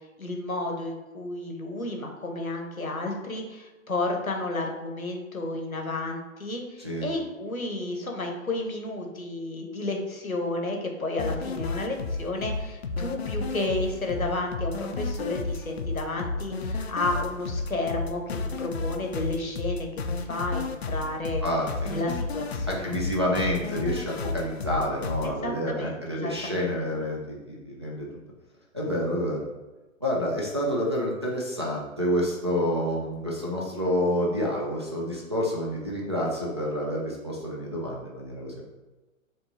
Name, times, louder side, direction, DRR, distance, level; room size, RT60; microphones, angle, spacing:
voice 1, 0.2-21.4 21.9-22.9 25.2-26.7, left 2 dB, 90° left, 2 dB, 0.9 m, -32 dB
sound 1, 11.2-25.3, left 3 dB, 50° left, 0.5 m, -32 dB
voice 2, 21.4-22.0 22.6-28.1 28.7-29.5 30.0-38.7, equal, 20° right, -5 dB, 0.4 m, -28 dB
7.1 x 2.7 x 2.7 m, 1.1 s
figure-of-eight pair, 125°, 41 cm